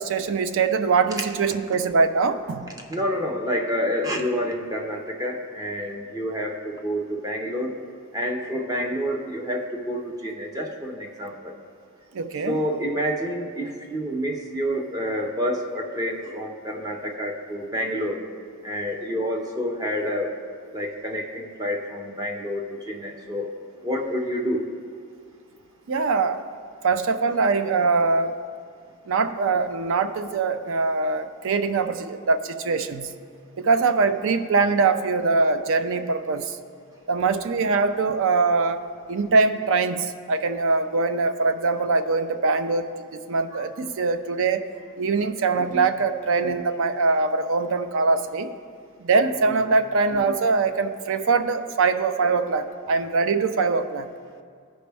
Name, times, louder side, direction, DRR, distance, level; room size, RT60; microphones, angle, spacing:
voice 1, 0.0-2.7 12.1-12.6 25.9-26.4 26.8-28.3 29.1-33.1 33.6-36.6 37.1-38.8 39.1-42.9 43.3-44.6 45.0-48.5 49.0-54.1, right 4 dB, 60° right, 10 dB, 0.5 m, -22 dB
voice 2, 2.9-7.7 8.1-11.5 12.5-18.2 18.6-20.3 20.7-23.5 23.8-24.6 43.5-43.6 45.6-45.9, equal, 15° right, 1 dB, 0.6 m, -28 dB
14.5 x 5.2 x 3.4 m, 2.2 s
head